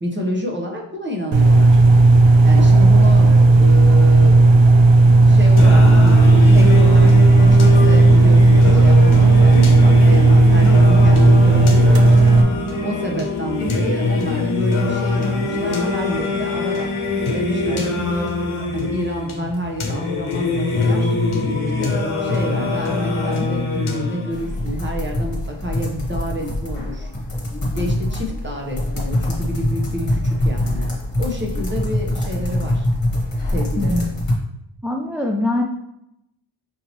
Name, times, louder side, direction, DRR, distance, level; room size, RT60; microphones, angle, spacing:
voice 1, 0.0-1.8 2.4-4.5 5.3-7.1 7.4-12.1 12.8-18.3 18.7-21.2 21.8-27.1 27.7-32.9 33.5-34.0, equal, 25° right, 0 dB, 0.9 m, -29 dB
sound 1, 1.3-12.4, right 2 dB, 65° right, 0.5 m, -11 dB
Singing, 5.6-24.6, left 3 dB, 80° left, 0.9 m, -22 dB
sound 2, 24.3-34.3, left 1 dB, 45° left, 1.3 m, -24 dB
voice 2, 33.8-34.1 34.8-35.6, left 1 dB, 5° right, 0 dB, 0.3 m, -22 dB
5.4 x 2.8 x 2.9 m, 0.82 s
wide cardioid pair, 70°, 49 cm